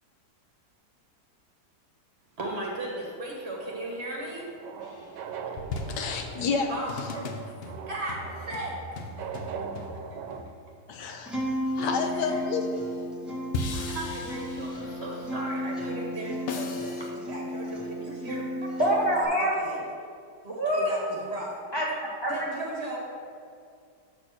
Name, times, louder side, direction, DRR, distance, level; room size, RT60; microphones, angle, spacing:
voice 1, 2.4-4.5 5.7-5.8 6.7-7.3 7.9-9.5 12.0-12.4 13.7-18.5 19.4-19.8 20.4-21.5 22.3-23.2, right 1 dB, 40° right, -2 dB, 1.6 m, -36 dB
sound 1, 3.2-10.4, right 6 dB, 85° right, 1.2 m, -41 dB
sound 2, 4.8-5.2 5.6-12.2 13.5-15.2 16.5-17.1, left 2 dB, 65° left, 0.5 m, -38 dB
voice 2, 5.9-6.7 10.9-12.7, left 5 dB, 85° left, 5 dB, 1.4 m, -30 dB
Acoustic guitar, 11.3-19.2, equal, ahead, 1.2 m, -34 dB
voice 3, 18.8-19.5 20.6-20.9 21.7-22.3, equal, 15° left, -5 dB, 1.3 m, -25 dB
7.5 x 4.3 x 6.2 m, 2.2 s
omnidirectional pair, 1.8 m